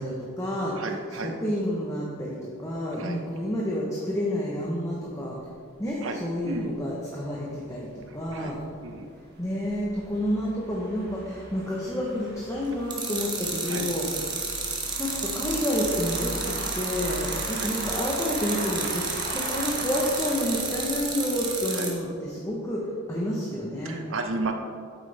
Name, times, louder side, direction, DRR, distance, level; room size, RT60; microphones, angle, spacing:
voice 1, 0.0-0.7 1.2-5.4 5.8-8.6 9.4-14.1 15.0-24.0, equal, 15° left, -5 dB, 1.0 m, -29 dB
voice 2, 0.8-1.4 3.0-3.2 6.0-6.7 8.1-8.5 8.8-9.1 13.7-13.9 17.6-17.7 21.7-22.0 23.8-24.5, right 3 dB, 70° right, 5 dB, 0.8 m, -33 dB
sound 1, 5.4-5.5 5.8-5.9 6.3-6.4 6.7-6.8 7.4-21.8, right 1 dB, 50° right, 1.3 m, -39 dB
Fly Fishing reeling reel, 12.9-21.9, right 4 dB, 20° right, 1.2 m, -31 dB
8.6 x 8.2 x 3.4 m, 2.2 s
head